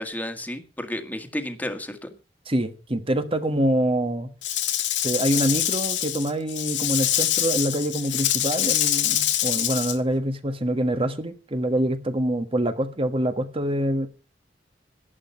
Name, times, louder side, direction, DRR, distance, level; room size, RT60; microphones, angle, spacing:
voice 1, 0.0-2.1, left 1 dB, 10° left, 6 dB, 1.7 m, -32 dB
voice 2, 2.5-4.3 5.0-14.1, right 1 dB, 30° right, 9 dB, 1.4 m, -25 dB
Rattle / Rattle (instrument), 4.4-10.0, left 11 dB, 90° left, 1.7 m, -25 dB
11.5 x 11.5 x 5.6 m, 0.34 s
head